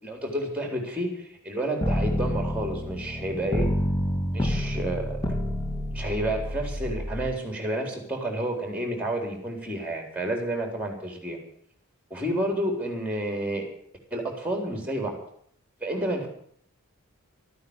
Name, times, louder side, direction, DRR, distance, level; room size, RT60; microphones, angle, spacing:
voice 1, 0.0-3.7 4.3-5.2 5.9-11.4 12.1-13.7 14.1-15.2 15.8-16.3, right 1 dB, 5° right, 3 dB, 4.0 m, -30 dB
sound 1, 1.8-7.3, left 1 dB, 15° left, 1.8 m, -28 dB
13.5 x 9.5 x 9.7 m, 0.64 s
head